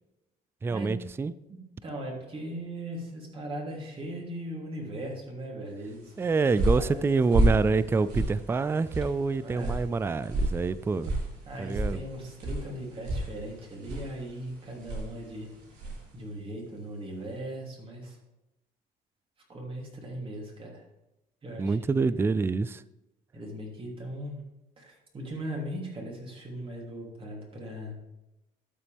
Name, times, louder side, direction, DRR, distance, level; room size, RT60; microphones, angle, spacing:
voice 1, 0.6-1.3 6.2-11.1 11.6-12.0 21.6-22.8, right 4 dB, 15° right, 16 dB, 0.3 m, -26 dB
voice 2, 1.5-6.1 6.8-7.0 9.4-9.8 11.5-15.5 16.1-18.2 19.5-20.8 21.4-21.9 23.3-24.4 24.8-27.9, right 1 dB, 30° right, -1 dB, 3.1 m, -39 dB
sound 1, 6.0-16.1, right 1 dB, 80° right, 3.7 m, -32 dB
12.0 x 7.0 x 3.5 m, 0.95 s
cardioid pair, 110°, 17 cm